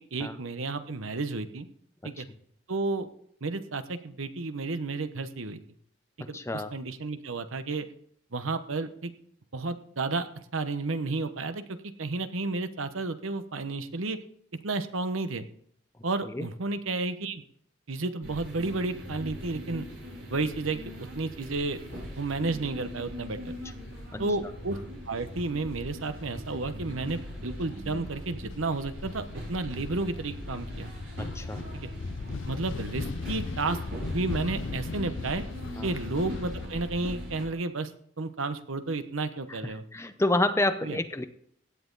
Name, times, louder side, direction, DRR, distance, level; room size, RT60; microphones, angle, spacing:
voice 1, 0.1-1.7 2.0-2.3 2.7-3.1 3.4-5.6 6.3-7.9 8.3-9.1 9.5-11.6 12.0-14.2 14.6-15.4 16.0-17.4 17.9-19.8 20.3-21.8 22.1-23.5 24.2-24.8 25.1-30.9 31.7-31.9 32.5-33.8 34.1-35.4 35.8-37.9 38.2-39.8 40.8-41.0, right 3 dB, 80° right, 10 dB, 1.0 m, -32 dB
voice 2, 6.2-6.7 16.3-16.5 24.1-24.2 31.2-31.6 35.8-35.9 39.5-39.6 39.9-41.2, left 2 dB, 15° left, 9 dB, 0.6 m, -29 dB
sound 1, 18.2-37.5, equal, 65° right, 5.4 m, -41 dB
sound 2, 21.8-36.7, left 3 dB, 70° left, 0.6 m, -40 dB
16.5 x 9.5 x 4.0 m, 0.65 s
head